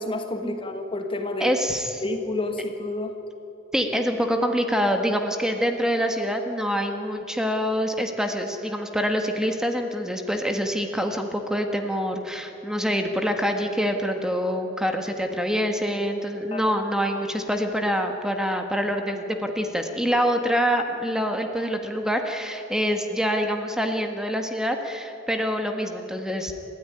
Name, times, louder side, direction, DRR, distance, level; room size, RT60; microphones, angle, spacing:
voice 1, 0.0-1.5 2.0-3.1 16.5-16.6, left 2 dB, 25° left, 6 dB, 1.5 m, -29 dB
voice 2, 1.4-2.0 3.7-26.5, equal, 5° right, 4 dB, 1.6 m, -25 dB
29.0 x 13.5 x 9.8 m, 2.9 s
head